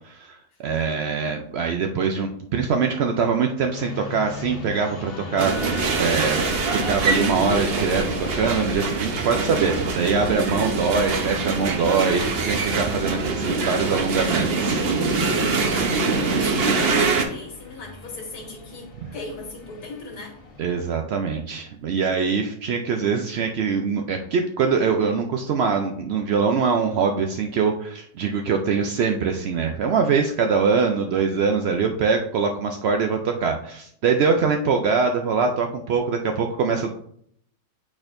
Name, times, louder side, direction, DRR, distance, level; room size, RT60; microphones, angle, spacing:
voice 1, 0.0-6.4 6.7-14.8 19.0-19.1 20.6-36.9, right 5 dB, 80° right, 4 dB, 0.5 m, -23 dB
sound 1, 3.7-20.9, left 2 dB, 40° left, 1.1 m, -39 dB
sound 2, 5.4-17.2, right 3 dB, 50° right, 0.8 m, -24 dB
voice 2, 15.7-20.4, left 3 dB, 75° left, -1 dB, 2.1 m, -38 dB
8.6 x 4.2 x 2.5 m, 0.66 s
omnidirectional pair, 1.7 m